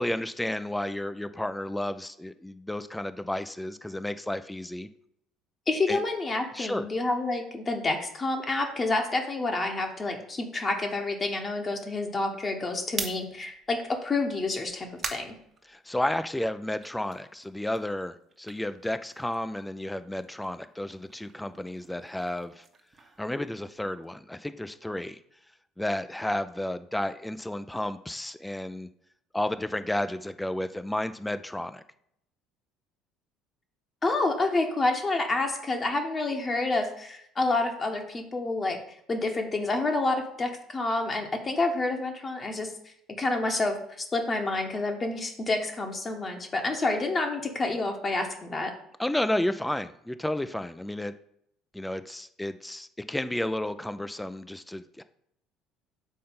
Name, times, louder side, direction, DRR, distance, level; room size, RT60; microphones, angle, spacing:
voice 1, 0.0-4.9 5.9-6.0 6.5-6.9 15.6-22.7 23.2-25.2 25.8-28.9 29.3-31.8 49.0-51.1 51.7-55.0, left 1 dB, 5° left, 12 dB, 0.3 m, -32 dB
voice 2, 5.7-15.3 34.0-38.8 39.1-48.7, left 2 dB, 25° left, 3 dB, 0.9 m, -28 dB
sound 1, 12.8-16.3 16.7-19.6 19.9-24.1, right 4 dB, 30° right, 0.9 m, -42 dB
5.4 x 4.2 x 5.3 m, 0.72 s
figure-of-eight pair, 55°, 0 cm